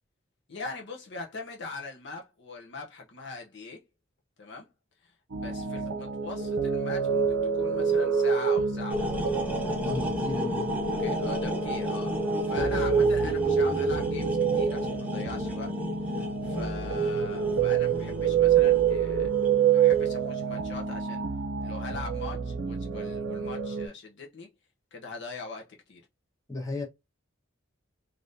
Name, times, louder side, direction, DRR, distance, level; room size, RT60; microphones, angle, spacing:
voice 1, 0.5-3.8 4.4-4.7 5.0-9.1 11.0-15.8 16.1-19.3 19.7-21.2 21.6-24.5 24.9-26.0, left 3 dB, 60° left, 0.7 m, -41 dB
sound 1, 5.3-23.9, right 7 dB, 70° right, 0.6 m, -27 dB
sound 2, 8.9-19.8, left 2 dB, 5° right, 0.6 m, -34 dB
voice 2, 9.8-10.7 26.5-26.8, left 2 dB, 15° left, 1.1 m, -34 dB
3.4 x 2.6 x 2.6 m
head